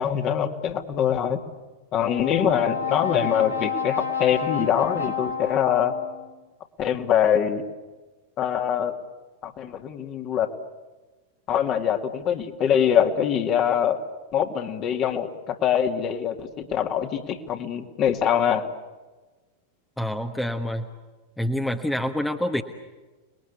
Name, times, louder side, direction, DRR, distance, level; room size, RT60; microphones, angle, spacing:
voice 1, 0.0-1.4 1.9-5.9 6.8-7.6 8.4-8.9 9.4-10.5 11.5-14.0 14.3-18.6, left 9 dB, 35° left, 5 dB, 2.3 m, -23 dB
Brass instrument, 1.9-6.3, left 6 dB, 90° left, 3.6 m, -30 dB
voice 2, 20.0-20.9 21.4-22.6, left 1 dB, 5° left, 6 dB, 1.4 m, -26 dB
30.0 x 21.0 x 8.3 m, 1.2 s
figure-of-eight pair, 90°, 0 cm